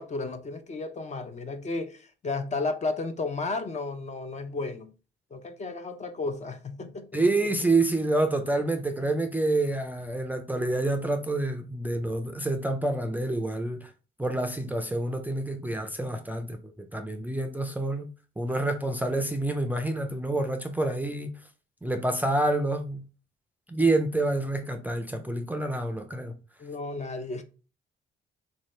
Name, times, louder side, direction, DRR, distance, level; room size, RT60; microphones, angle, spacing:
voice 1, 0.0-4.9 5.3-7.4 26.6-27.4, left 3 dB, 35° left, 0.6 m, -33 dB
voice 2, 7.1-13.9 14.2-18.1 18.4-21.3 21.8-23.0 23.7-26.3, right 2 dB, 10° right, 0.4 m, -28 dB
3.6 x 2.7 x 3.1 m
cardioid pair, 90°, 20 cm